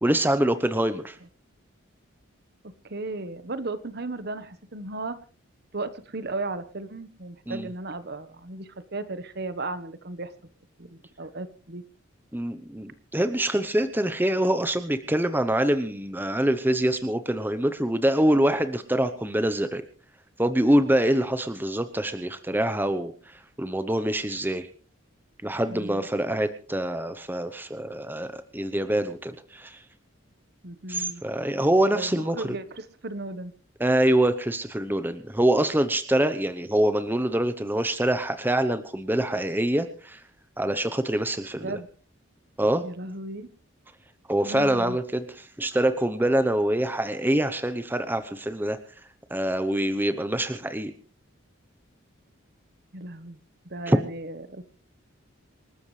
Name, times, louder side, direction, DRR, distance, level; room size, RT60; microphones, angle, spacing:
voice 1, 0.0-1.2 7.5-7.7 12.3-19.8 20.4-24.7 25.4-29.8 30.9-32.5 33.8-40.2 40.6-41.7 42.6-42.9 44.3-48.8 49.3-50.9 53.9-54.0, right 1 dB, 10° right, 10 dB, 0.8 m, -25 dB
voice 2, 2.6-5.2 5.7-10.3 10.8-11.8 25.7-26.1 30.6-31.2 31.8-33.5 41.6-41.9 42.8-43.5 44.4-45.0 52.9-53.4 53.7-54.6, right 2 dB, 50° right, 13 dB, 1.2 m, -35 dB
27.0 x 13.0 x 3.3 m, 0.40 s
head